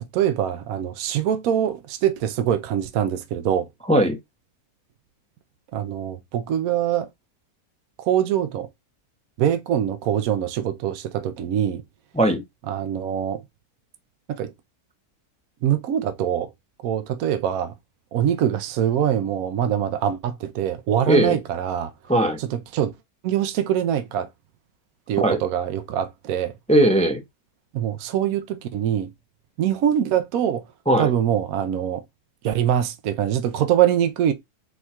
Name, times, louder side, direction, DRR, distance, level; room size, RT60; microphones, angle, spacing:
voice 1, 0.1-3.7 5.7-7.1 8.0-8.7 9.4-11.8 12.7-13.4 14.3-14.5 15.6-16.5 16.8-17.7 18.1-21.9 22.4-22.9 23.2-24.3 25.1-26.5 27.7-29.1 29.6-30.7 31.0-32.0 32.4-34.3, right 10 dB, 75° right, 1.0 m, -23 dB
voice 2, 21.1-21.4 22.1-22.4 25.2-25.4 26.7-27.2 30.9-31.1, right 1 dB, 10° left, 0.5 m, -18 dB
4.5 x 2.3 x 4.2 m
omnidirectional pair, 1.6 m